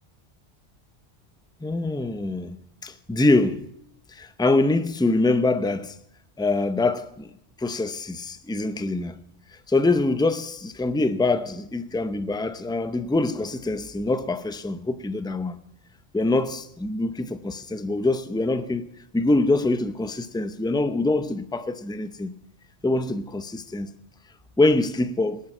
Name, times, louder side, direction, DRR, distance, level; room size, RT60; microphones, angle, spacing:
voice 1, 1.6-2.6 2.8-3.6 4.1-5.9 6.4-7.3 7.6-9.2 9.7-15.6 16.1-18.9 19.1-22.3 22.8-23.9 24.6-25.4, left 2 dB, 5° left, 0.6 m, -24 dB
19.0 x 11.0 x 6.0 m
omnidirectional pair, 1.2 m